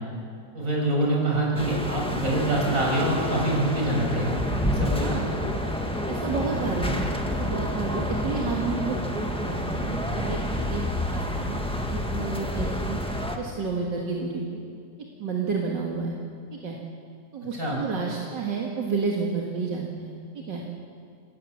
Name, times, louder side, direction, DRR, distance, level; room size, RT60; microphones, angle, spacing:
voice 1, 0.5-4.4 4.7-5.1 17.5-17.8, right 1 dB, 50° right, -2 dB, 6.8 m, -25 dB
sound 1, 1.5-13.4, left 1 dB, 5° left, 1.5 m, -29 dB
voice 2, 6.1-7.1 7.4-13.0 13.4-14.6 15.2-16.2 16.5-16.8 17.3-20.6, right 4 dB, 75° right, -1 dB, 2.5 m, -31 dB
27.0 x 18.5 x 7.2 m, 2.3 s
omnidirectional pair, 1.9 m